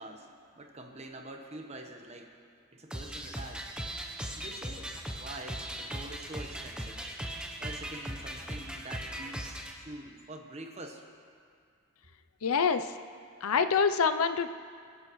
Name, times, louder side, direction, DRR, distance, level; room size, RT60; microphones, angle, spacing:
voice 1, 0.0-2.3 2.7-3.6 4.3-7.0 7.6-11.0, right 2 dB, 30° right, 3 dB, 1.1 m, -45 dB
sound 1, 2.9-9.7, equal, 5° right, 0.8 m, -39 dB
voice 2, 12.4-12.9 13.4-14.5, left 5 dB, 80° left, 10 dB, 0.5 m, -26 dB
26.0 x 10.5 x 3.1 m, 2.2 s
head